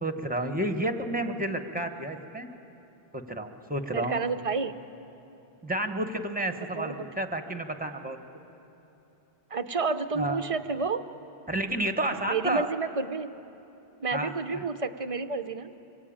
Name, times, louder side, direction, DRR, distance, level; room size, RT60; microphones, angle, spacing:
voice 1, 0.0-2.5 3.3-4.2 5.6-8.2 10.1-10.4 11.5-12.7 14.1-14.7, right 1 dB, 10° right, 6 dB, 1.4 m, -31 dB
voice 2, 3.9-4.7 6.6-7.0 9.5-11.0 12.3-13.3 14.0-15.7, right 4 dB, 35° right, 10 dB, 0.8 m, -30 dB
26.5 x 23.0 x 8.9 m, 2.9 s
omnidirectional pair, 1.1 m